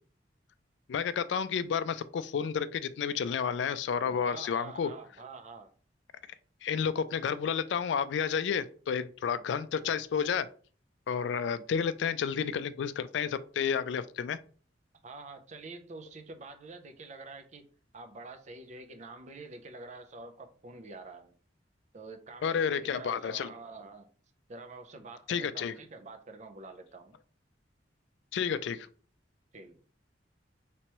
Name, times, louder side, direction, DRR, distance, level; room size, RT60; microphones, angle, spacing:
voice 1, 0.9-4.9 6.6-10.5 11.1-14.4 22.4-23.5 25.3-25.7 28.3-28.9, left 7 dB, 70° left, 0.3 m, -31 dB
voice 2, 4.0-5.7 15.0-17.7 17.9-21.3 21.9-24.1 24.5-27.2 29.5-29.8, right 3 dB, 40° right, 0.6 m, -47 dB
3.3 x 3.0 x 2.9 m
head